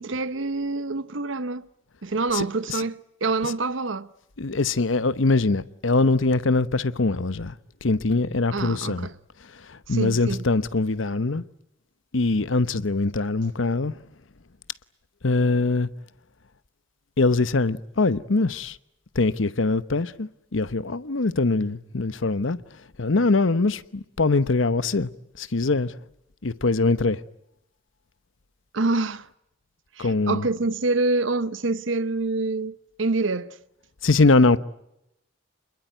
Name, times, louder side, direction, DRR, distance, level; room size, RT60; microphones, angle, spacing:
voice 1, 0.0-1.7 2.0-4.1 8.5-9.1 9.9-10.4 28.7-29.3 30.0-33.6, right 3 dB, 80° right, 1.0 m, -26 dB
voice 2, 2.3-2.8 3.4-3.5 4.4-7.6 7.8-9.1 9.5-11.4 12.1-13.9 15.2-15.9 17.2-18.8 19.1-22.6 23.0-25.1 25.4-25.9 26.4-27.2 30.0-30.5 34.0-34.6, left 3 dB, 80° left, 0.9 m, -22 dB
27.5 x 21.5 x 9.3 m
head